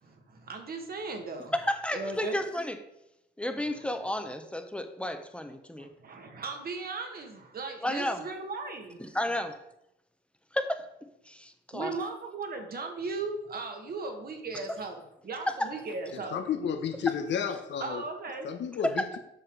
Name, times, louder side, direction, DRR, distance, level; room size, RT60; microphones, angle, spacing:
voice 1, 0.0-1.5 1.9-2.4 5.8-9.0 11.7-16.5 17.8-18.5, right 3 dB, 50° right, 5 dB, 1.7 m, -37 dB
voice 2, 1.5-2.8 3.4-5.9 7.8-8.2 9.0-9.6 10.5-10.9 11.3-11.9 18.8-19.1, left 1 dB, 5° left, 7 dB, 0.9 m, -32 dB
voice 3, 16.1-18.0 18.4-19.2, left 7 dB, 65° left, 6 dB, 0.9 m, -32 dB
8.0 x 5.8 x 4.7 m, 0.82 s
cardioid pair, 90°, 20 cm